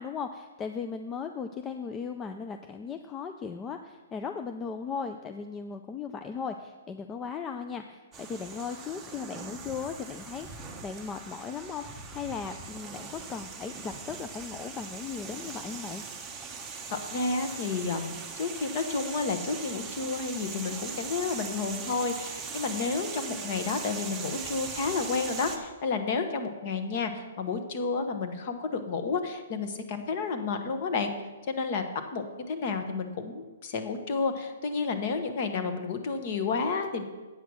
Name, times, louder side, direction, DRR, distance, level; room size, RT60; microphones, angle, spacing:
voice 1, 0.0-10.5 10.8-16.0, left 6 dB, 15° left, 7 dB, 0.3 m, -37 dB
sound 1, 8.1-25.6, right 5 dB, 10° right, 0.7 m, -40 dB
voice 2, 16.9-31.1 31.5-31.8 32.1-37.0, left 4 dB, 35° left, 7 dB, 1.0 m, -31 dB
8.3 x 8.0 x 6.1 m, 1.3 s
hypercardioid pair, 170°, 0 cm